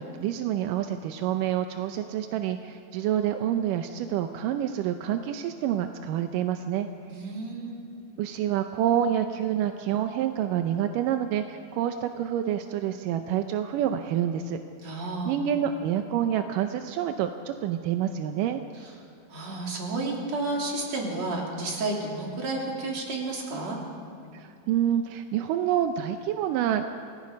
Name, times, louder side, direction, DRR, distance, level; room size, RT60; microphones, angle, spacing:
voice 1, 0.0-6.9 8.2-14.6 15.3-18.6 24.3-26.8, right 10 dB, 75° right, 7 dB, 2.0 m, -27 dB
voice 2, 7.1-7.8 14.8-15.5 19.3-23.8, right 2 dB, 45° right, -1 dB, 4.0 m, -31 dB
27.5 x 18.0 x 5.3 m, 2.7 s
omnidirectional pair, 4.4 m